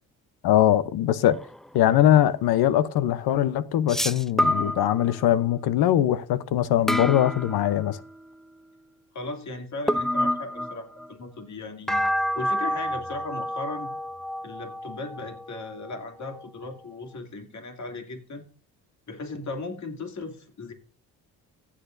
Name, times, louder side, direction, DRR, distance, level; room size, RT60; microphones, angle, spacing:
voice 1, 0.4-1.4 1.7-8.0, left 12 dB, 75° left, 0.8 m, -21 dB
sound 1, 1.3-1.6 3.9-5.4 6.9-8.1 9.9-11.1 11.9-16.5, equal, ahead, 0.4 m, -29 dB
voice 2, 9.1-12.0 12.3-13.9 14.4-18.5 19.1-20.7, left 3 dB, 45° left, 2.6 m, -37 dB
15.0 x 8.6 x 2.6 m
supercardioid pair, 75°, 38 cm